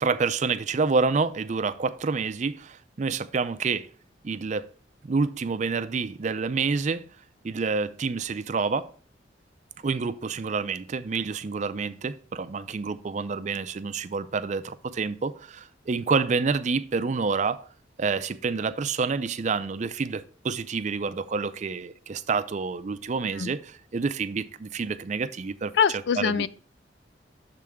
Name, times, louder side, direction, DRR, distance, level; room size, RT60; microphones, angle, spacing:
voice 1, 0.0-3.9 4.2-4.7 5.0-7.1 7.4-8.9 9.8-17.6 18.0-26.5, right 4 dB, 40° right, 0.4 m, -28 dB
voice 2, 25.7-26.5, left 7 dB, 60° left, 0.3 m, -23 dB
6.7 x 3.6 x 6.2 m
head